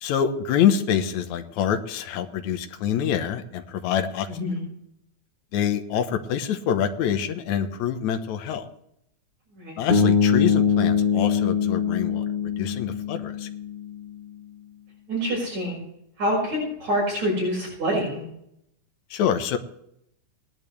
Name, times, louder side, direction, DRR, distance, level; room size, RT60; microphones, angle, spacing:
voice 1, 0.0-4.3 5.5-8.7 9.8-13.5 19.1-19.6, left 9 dB, 80° left, 7 dB, 2.3 m, -26 dB
voice 2, 4.3-4.6 9.5-9.8 15.1-15.8 16.2-18.2, equal, 70° right, -6 dB, 6.3 m, -26 dB
Bass guitar, 9.9-14.0, left 6 dB, 25° left, 1.2 m, -22 dB
18.5 x 10.5 x 3.3 m, 0.75 s
omnidirectional pair, 3.3 m